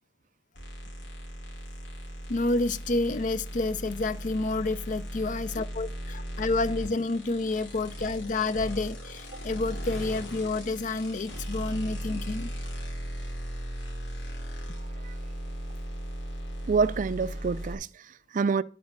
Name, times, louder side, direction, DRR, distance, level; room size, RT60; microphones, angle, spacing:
sound 1, 0.5-17.7, equal, 85° left, 2.7 m, -37 dB
voice 1, 2.3-12.5, left 2 dB, 45° left, 0.5 m, -29 dB
voice 2, 16.7-18.6, right 5 dB, 45° right, 0.4 m, -27 dB
10.5 x 4.5 x 7.3 m
head